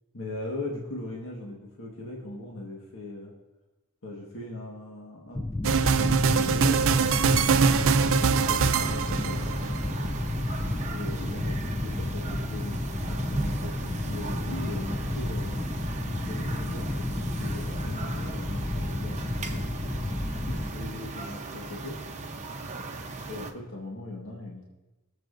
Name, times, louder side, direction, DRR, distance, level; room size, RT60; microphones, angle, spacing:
voice 1, 0.1-3.3 4.0-5.4 5.9-9.4 10.9-15.6 16.2-19.8 20.5-22.0 23.2-24.6, left 2 dB, 65° left, -2 dB, 1.5 m, -39 dB
sound 1, 5.3-20.7, left 1 dB, 15° left, 0.4 m, -31 dB
sound 2, 5.6-9.8, right 5 dB, 65° right, 0.5 m, -23 dB
sound 3, 7.6-23.5, right 3 dB, 30° right, 0.9 m, -38 dB
21.5 x 7.4 x 2.6 m, 1.1 s
head